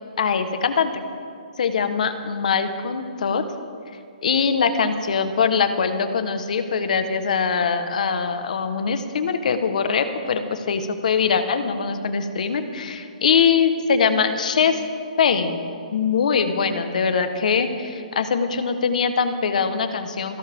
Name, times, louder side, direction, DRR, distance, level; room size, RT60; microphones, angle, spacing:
voice 1, 0.2-0.9 1.6-3.4 4.2-14.8 15.2-20.4, left 6 dB, 60° left, 9 dB, 1.3 m, -22 dB
27.5 x 12.0 x 3.7 m, 2.3 s
hypercardioid pair, 175°, 5 cm